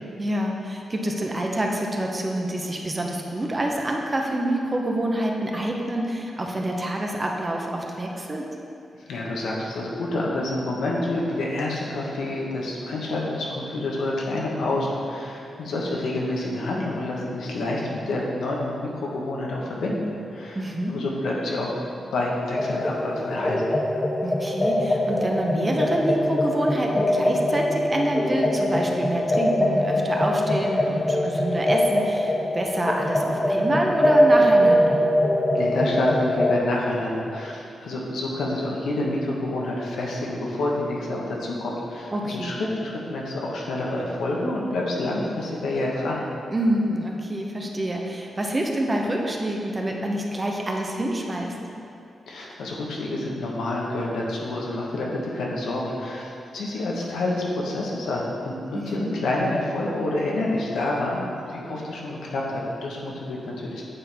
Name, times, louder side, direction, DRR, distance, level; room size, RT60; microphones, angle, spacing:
voice 1, 0.2-8.5 20.5-21.0 24.2-35.1 42.1-42.6 46.5-51.6 58.7-59.2, right 1 dB, 25° right, 0 dB, 0.7 m, -27 dB
voice 2, 9.0-20.6 20.9-21.8 22.1-23.8 35.5-46.2 52.3-63.8, left 2 dB, 90° left, -3 dB, 1.1 m, -28 dB
sound 1, 22.6-36.6, equal, 20° left, 0.5 m, -22 dB
8.9 x 4.2 x 3.4 m, 2.7 s
cardioid pair, 110°, 0 cm